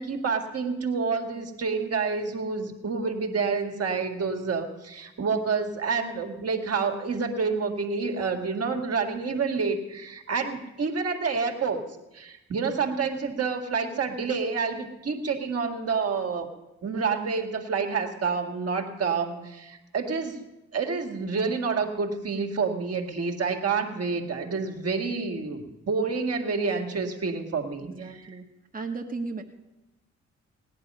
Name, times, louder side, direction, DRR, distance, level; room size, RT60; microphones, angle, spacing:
voice 1, 0.0-11.8 12.1-16.5 16.8-20.4 20.7-27.9, right 5 dB, 50° right, 3 dB, 2.2 m, -28 dB
voice 2, 27.8-28.5 28.7-29.4, right 3 dB, 30° right, 3 dB, 1.5 m, -35 dB
17.5 x 10.5 x 5.6 m, 0.98 s
hypercardioid pair, 45°, 31 cm